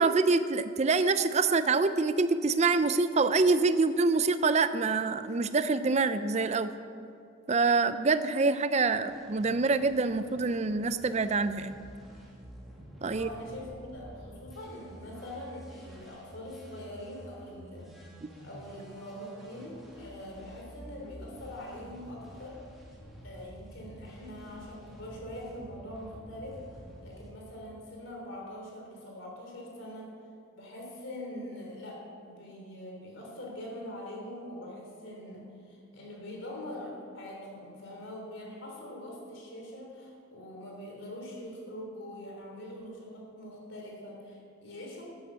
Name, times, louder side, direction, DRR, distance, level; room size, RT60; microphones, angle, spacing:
voice 1, 0.0-6.7 7.5-11.8 13.0-13.3, right 3 dB, 35° right, 12 dB, 0.4 m, -26 dB
sound 1, 9.1-27.3, equal, ahead, 2.2 m, -50 dB
voice 2, 13.1-17.9 18.4-22.6 23.2-26.6 27.0-30.1 30.5-45.0, left 1 dB, 65° left, -1 dB, 3.6 m, -43 dB
11.0 x 9.8 x 6.9 m, 2.5 s
head